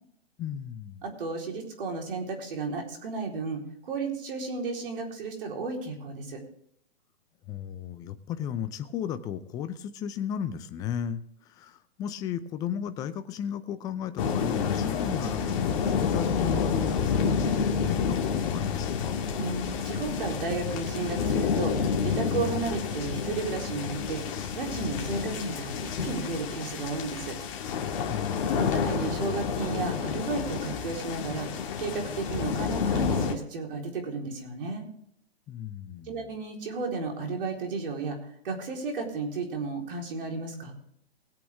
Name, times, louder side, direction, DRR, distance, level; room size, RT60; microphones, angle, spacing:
voice 1, 0.4-1.0 7.5-11.2 11.6-19.1 28.1-28.6 35.5-36.3, left 9 dB, 10° left, 11 dB, 0.5 m, -34 dB
voice 2, 1.0-6.4 19.4-25.7 26.0-27.4 28.5-34.8 36.1-38.2 38.4-40.7, right 4 dB, 55° right, 1 dB, 4.1 m, -33 dB
sound 1, 14.2-33.3, left 6 dB, 35° left, 2.1 m, -29 dB
21.0 x 8.5 x 3.5 m, 0.70 s
hypercardioid pair, 135°, 32 cm